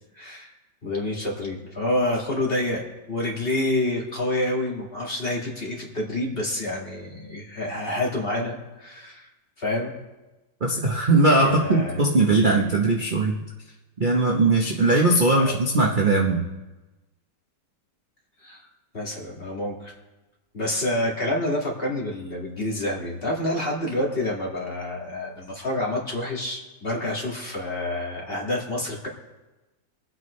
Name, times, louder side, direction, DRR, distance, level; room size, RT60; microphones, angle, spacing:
voice 1, 0.2-0.5 0.8-9.3 9.6-9.9 11.4-12.0 15.4-15.6 18.4-18.7 18.9-19.9 20.5-29.1, left 1 dB, 30° left, -3 dB, 2.3 m, -28 dB
voice 2, 10.6-13.4 14.0-16.4, right 2 dB, 35° right, -1 dB, 0.9 m, -20 dB
23.5 x 8.4 x 3.2 m, 1.1 s
omnidirectional pair, 2.1 m